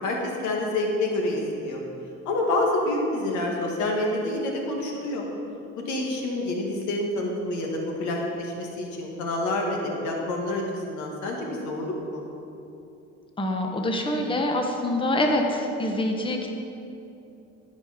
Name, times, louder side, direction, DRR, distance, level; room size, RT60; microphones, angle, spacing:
voice 1, 0.0-1.8 2.3-5.3 5.8-12.2, left 1 dB, 80° left, 0 dB, 1.8 m, -28 dB
voice 2, 13.4-16.5, left 1 dB, 15° left, 2 dB, 1.1 m, -25 dB
14.5 x 5.2 x 5.0 m, 2.8 s
cardioid pair, 100°, 29 cm